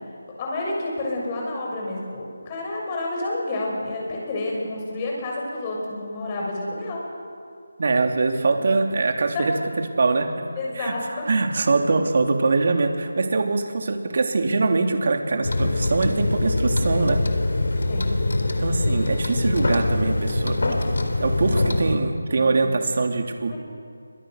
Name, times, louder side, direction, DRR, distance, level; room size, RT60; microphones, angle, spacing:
voice 1, 0.4-7.0 9.3-9.5 10.6-11.3 17.9-18.1 21.4-21.8 22.3-22.7 23.5-23.6, left 2 dB, 20° left, -1 dB, 6.8 m, -30 dB
voice 2, 7.8-9.6 10.0-10.3 10.8-10.9 11.3-17.2 18.6-20.6 21.2-23.6, right 3 dB, 45° right, 4 dB, 3.1 m, -23 dB
sound 1, 15.4-22.0, left 2 dB, 65° left, 4.2 m, -23 dB
29.0 x 26.0 x 6.7 m, 2.3 s
figure-of-eight pair, 170°, 0 cm